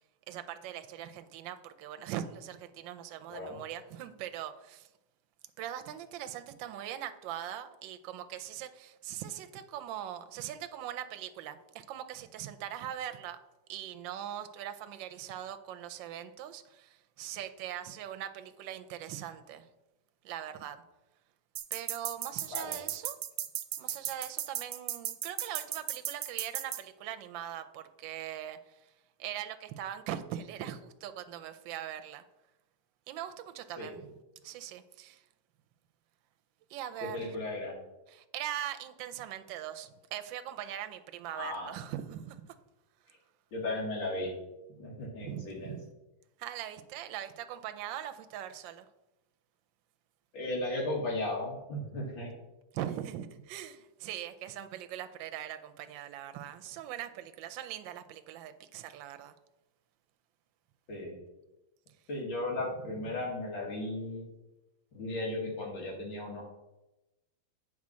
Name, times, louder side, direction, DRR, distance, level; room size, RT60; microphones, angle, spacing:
voice 1, 0.3-4.9 5.6-13.4 13.7-19.7 20.2-20.8 21.7-23.2 23.8-28.8 29.2-32.2 33.1-34.2 34.4-35.2 36.7-37.4 38.1-42.6 45.2-45.9 46.4-48.9 52.7-59.3, right 11 dB, 75° right, 9 dB, 1.3 m, -41 dB
sound 1, 21.6-26.8, right 13 dB, 90° right, 1.4 m, -35 dB
voice 2, 37.0-37.7 41.3-41.7 43.5-44.3 44.7-45.8 50.3-52.3 60.9-61.2 62.1-64.2 64.9-66.5, left 1 dB, 70° left, -2 dB, 2.7 m, -35 dB
8.6 x 4.1 x 6.1 m, 0.99 s
omnidirectional pair, 2.2 m